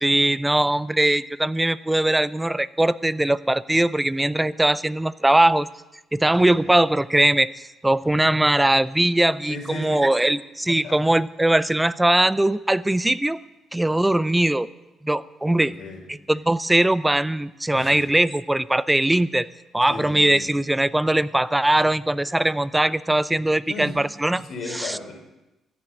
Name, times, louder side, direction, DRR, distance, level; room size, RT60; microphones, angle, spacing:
voice 1, 0.0-5.7 6.1-7.5 7.8-13.4 13.7-14.7 15.0-15.7 16.3-19.4 19.7-24.4 24.7-25.0, right 1 dB, 10° right, 16 dB, 0.6 m, -20 dB
voice 2, 9.5-10.3 10.7-11.0 15.5-16.0 17.7-18.0 19.9-20.5 23.7-23.9 24.3-25.1, left 3 dB, 60° left, 2 dB, 5.0 m, -36 dB
13.5 x 11.0 x 8.7 m, 0.97 s
cardioid pair, 90°, 0 cm